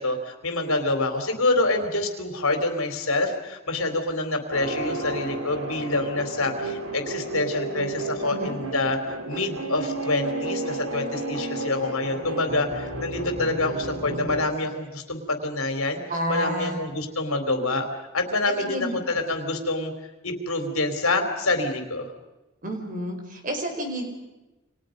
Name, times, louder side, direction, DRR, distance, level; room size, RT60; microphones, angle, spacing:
voice 1, 0.0-16.0 16.3-17.9 18.1-19.9 20.2-22.1, left 2 dB, 80° left, 5 dB, 4.0 m, -26 dB
sound 1, 4.5-14.4, right 2 dB, 90° right, 3.0 m, -32 dB
voice 2, 16.1-16.8 18.6-19.0 22.6-24.0, equal, 40° right, 3 dB, 5.0 m, -30 dB
29.5 x 25.5 x 5.4 m, 1.1 s
head